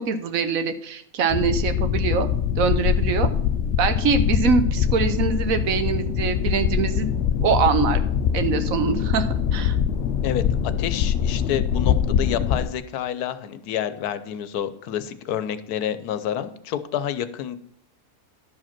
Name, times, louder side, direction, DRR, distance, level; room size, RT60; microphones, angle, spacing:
voice 1, 0.0-2.3 2.6-3.3 3.8-7.1 7.4-8.0 8.3-9.8, right 5 dB, 65° right, 9 dB, 1.2 m, -23 dB
sound 1, 1.3-12.7, left 8 dB, 70° left, 0.6 m, -23 dB
voice 2, 10.8-17.6, left 10 dB, 90° left, 12 dB, 1.2 m, -28 dB
12.0 x 5.0 x 5.9 m, 0.67 s
omnidirectional pair, 1.6 m